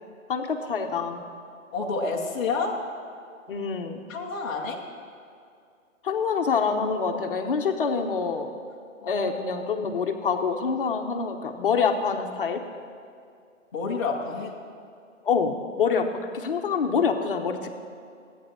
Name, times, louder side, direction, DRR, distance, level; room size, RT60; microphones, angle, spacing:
voice 1, 0.3-1.2 3.5-4.0 6.0-8.5 9.1-12.6 15.2-17.7, left 5 dB, 45° left, 5 dB, 1.0 m, -26 dB
voice 2, 1.7-2.8 4.1-4.8 9.0-9.3 9.8-9.9 13.7-14.5, left 4 dB, 15° left, -5 dB, 0.7 m, -29 dB
13.5 x 9.2 x 6.1 m, 2.3 s
hypercardioid pair, 155°, 39 cm